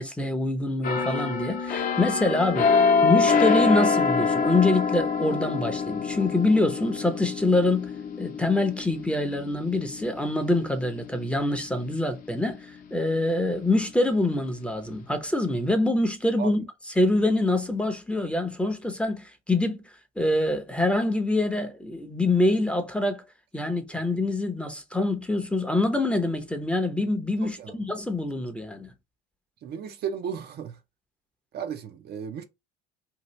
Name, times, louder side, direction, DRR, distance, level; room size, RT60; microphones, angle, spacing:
voice 1, 0.0-7.9 8.2-16.6 17.0-19.8 20.2-23.2 23.5-28.9, left 2 dB, 5° left, 0.7 m, -25 dB
sound 1, 0.8-12.4 12.8-13.1, left 5 dB, 45° left, 0.8 m, -26 dB
voice 2, 27.4-27.8 29.6-30.8 31.5-32.4, right 8 dB, 50° right, 0.6 m, -34 dB
2.8 x 2.4 x 3.1 m
supercardioid pair, 95°, 21 cm